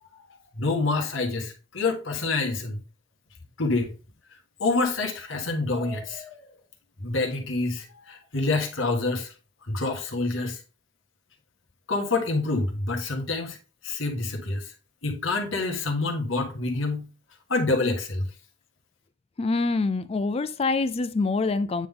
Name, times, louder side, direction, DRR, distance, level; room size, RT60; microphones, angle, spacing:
voice 1, 0.5-2.8 3.6-3.9 4.6-6.5 7.0-9.3 9.7-10.6 11.9-13.6 13.8-14.7 15.0-17.1 17.5-18.2, left 3 dB, 75° left, 1.7 m, -27 dB
voice 2, 19.4-21.9, left 3 dB, 30° left, 0.3 m, -25 dB
9.1 x 3.8 x 3.7 m
head